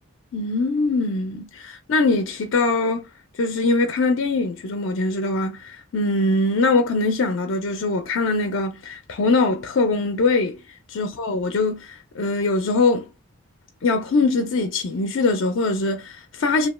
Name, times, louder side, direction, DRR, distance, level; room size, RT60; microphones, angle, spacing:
voice 1, 0.3-3.0 3.4-10.6 10.9-13.1 13.8-16.7, left 3 dB, 60° left, 0.4 m, -22 dB
2.8 x 2.1 x 3.0 m
head